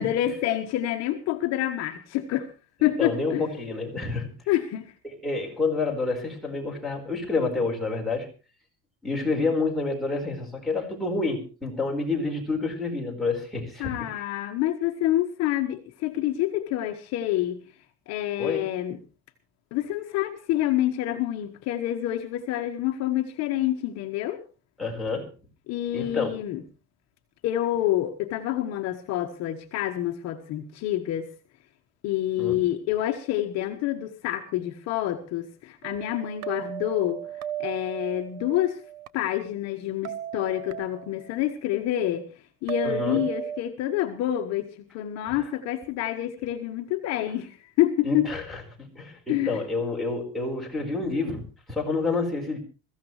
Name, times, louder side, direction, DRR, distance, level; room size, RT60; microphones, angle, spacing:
voice 1, 0.0-2.5 2.8-3.4 4.5-4.9 13.8-17.6 18.1-19.0 19.7-24.4 25.7-26.6 27.4-31.3 32.0-37.2 37.6-38.8 39.1-42.3 42.6-48.3 49.3-49.6, left 13 dB, 50° left, 1.3 m, -27 dB
voice 2, 2.8-4.3 5.2-8.3 9.0-14.2 18.4-18.6 24.8-25.3 25.9-26.3 32.4-32.6 42.8-43.2 45.3-45.4 48.0-51.4 51.7-52.6, left 3 dB, ahead, 4.6 m, -28 dB
sound 1, 35.8-39.1 40.0-41.3 42.7-43.6, right 10 dB, 90° right, 1.2 m, -35 dB
22.0 x 15.0 x 3.2 m
cardioid pair, 165°, 33 cm